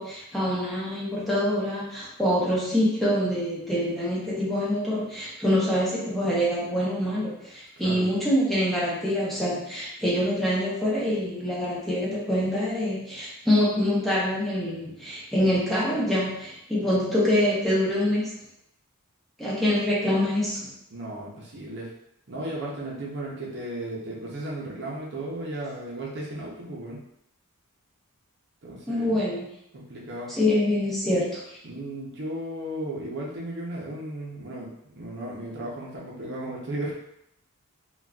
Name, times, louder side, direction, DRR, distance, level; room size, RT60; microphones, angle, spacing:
voice 1, 0.0-18.3 19.4-20.7 28.9-29.5 30.3-31.4, left 1 dB, ahead, -8 dB, 0.8 m, -25 dB
voice 2, 7.8-8.1 20.9-21.9 22.3-27.0 28.6-29.2 29.7-30.3 31.6-34.7 35.0-36.9, right 1 dB, 55° right, -4 dB, 0.7 m, -35 dB
3.9 x 2.3 x 2.3 m, 0.78 s
head